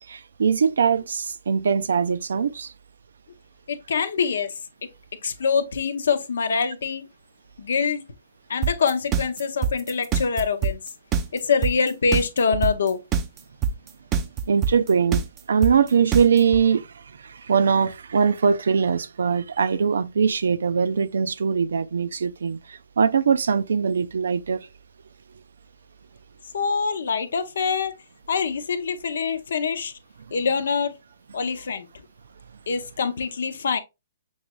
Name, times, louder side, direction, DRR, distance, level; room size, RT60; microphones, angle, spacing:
voice 1, 0.1-2.7 14.5-15.2 15.5-16.9 17.2-24.7, right 6 dB, 80° right, 0.4 m, -21 dB
voice 2, 3.7-4.5 5.2-7.1 7.6-8.0 8.5-10.8 11.3-13.0 26.5-27.9 28.3-29.9 30.3-31.0 31.3-31.9 32.7-33.8, left 5 dB, 75° left, 0.7 m, -24 dB
sound 1, 8.6-16.6, right 7 dB, 20° right, 0.5 m, -23 dB
6.3 x 3.0 x 2.2 m
hypercardioid pair, 150°, 0 cm